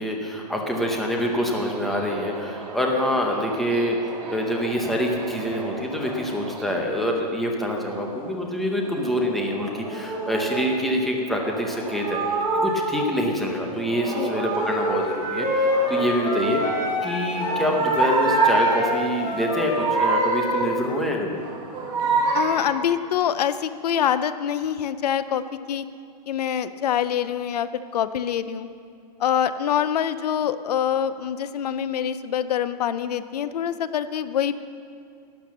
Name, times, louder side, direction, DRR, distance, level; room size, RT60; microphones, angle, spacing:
voice 1, 0.0-21.4, equal, ahead, 0 dB, 0.7 m, -26 dB
Subway metro underground, 0.7-6.6, right 3 dB, 70° right, 3.2 m, -38 dB
sound 1, 6.3-6.6 7.9-8.3 8.8-10.7 11.4-13.2 13.7-15.2 15.6-16.8 17.3-19.0 19.4-20.8 21.3-22.8, right 3 dB, 20° right, 1.9 m, -26 dB
sound 2, 14.6-21.1, left 1 dB, 35° left, 3.2 m, -27 dB
voice 2, 22.3-25.9 26.3-28.7 29.2-34.5, left 9 dB, 70° left, 13 dB, 0.6 m, -25 dB
12.0 x 10.0 x 7.2 m, 2.3 s
supercardioid pair, 175°, 21 cm